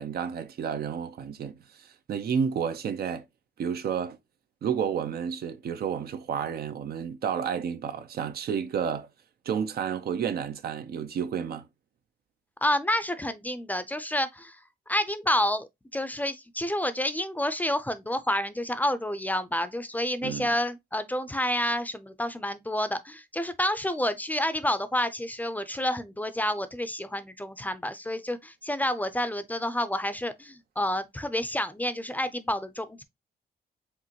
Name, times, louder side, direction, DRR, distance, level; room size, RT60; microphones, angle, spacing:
voice 1, 0.0-3.2 3.6-4.2 4.6-9.1 9.5-11.7 20.2-20.5, right 7 dB, 70° right, 0.6 m, -31 dB
voice 2, 12.6-14.6 14.9-15.7 15.9-33.0, left 1 dB, 10° left, 0.5 m, -29 dB
5.1 x 3.0 x 2.9 m
cardioid pair, 105°, 16 cm